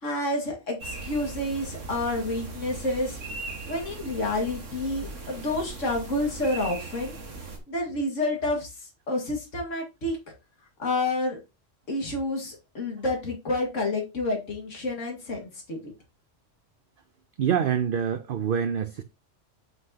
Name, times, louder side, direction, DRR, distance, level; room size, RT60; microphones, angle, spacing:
voice 1, 0.0-3.2 3.7-7.1 7.7-10.2 10.8-11.4 11.9-15.9, left 2 dB, 85° left, 2.3 m, -29 dB
sound 1, 0.8-7.6, right 3 dB, 80° right, 2.0 m, -39 dB
voice 2, 17.4-19.0, right 8 dB, 55° right, 0.7 m, -26 dB
8.1 x 5.9 x 2.8 m
omnidirectional pair, 1.3 m